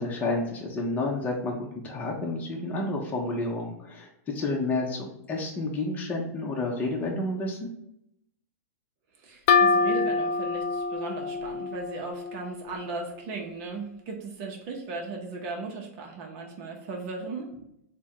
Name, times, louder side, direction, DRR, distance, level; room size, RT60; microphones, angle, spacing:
voice 1, 0.0-7.7, left 2 dB, 20° left, -1 dB, 0.8 m, -30 dB
voice 2, 9.2-17.5, right 3 dB, 45° right, 1 dB, 0.8 m, -37 dB
sound 1, 9.5-13.0, left 4 dB, 50° left, 0.5 m, -26 dB
3.5 x 2.2 x 4.4 m, 0.77 s
hypercardioid pair, 115°, 8 cm